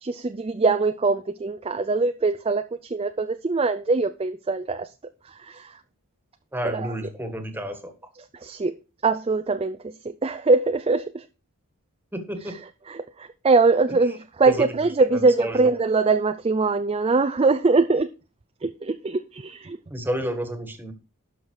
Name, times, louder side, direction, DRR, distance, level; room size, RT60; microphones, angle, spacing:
voice 1, 0.0-4.9 5.3-5.8 6.7-6.9 8.3-8.8 9.0-11.2 12.9-18.1 18.6-19.8, right 3 dB, 25° right, 0.4 m, -22 dB
voice 2, 6.5-7.9 12.1-12.5 13.9-14.0 14.5-14.6 15.1-15.6 19.9-20.9, equal, 10° right, 1.6 m, -30 dB
12.0 x 5.8 x 4.7 m
head